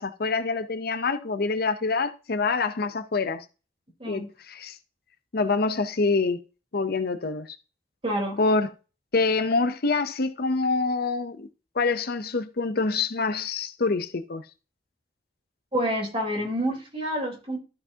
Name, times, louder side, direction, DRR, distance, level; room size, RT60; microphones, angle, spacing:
voice 1, 0.0-3.4 4.0-4.8 5.3-6.4 6.7-7.6 8.4-8.7 9.1-11.5 11.7-14.4, left 3 dB, 55° left, 0.7 m, -26 dB
voice 2, 8.0-8.4 15.7-17.6, equal, 30° right, 3.8 m, -28 dB
13.0 x 5.8 x 2.8 m
head